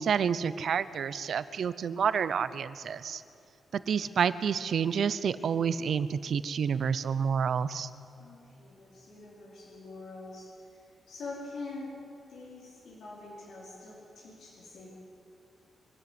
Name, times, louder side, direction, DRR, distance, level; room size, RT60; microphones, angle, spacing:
voice 1, 0.0-3.2 3.7-7.9, right 7 dB, 60° right, 14 dB, 0.7 m, -29 dB
voice 2, 3.8-4.2 8.2-11.9 12.3-14.9, left 3 dB, 90° left, -6 dB, 4.7 m, -45 dB
24.5 x 12.5 x 9.5 m, 2.7 s
wide cardioid pair, 160°, 0 cm